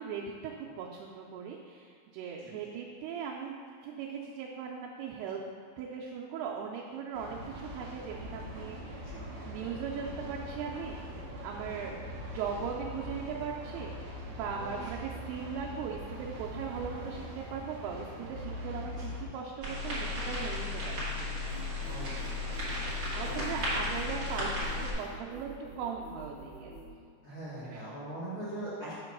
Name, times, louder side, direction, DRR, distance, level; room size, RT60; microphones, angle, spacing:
voice 1, 0.0-5.4 5.8-9.1 9.5-11.2 11.4-14.0 14.3-21.5 23.1-24.5 24.8-26.7 27.6-27.8, right 6 dB, 85° right, -2 dB, 2.6 m, -39 dB
sound 1, 7.1-19.3, left 1 dB, 70° right, 2.0 m, -42 dB
voice 2, 14.6-14.9 19.0-19.1 21.8-22.6 23.2-23.5 27.2-28.9, right 1 dB, 55° left, -12 dB, 1.5 m, -41 dB
sound 2, 19.6-24.9, left 2 dB, 45° right, 1.3 m, -34 dB
sound 3, 21.4-26.9, right 1 dB, 80° left, 2.9 m, -47 dB
6.9 x 3.0 x 5.8 m, 2.3 s
omnidirectional pair, 4.5 m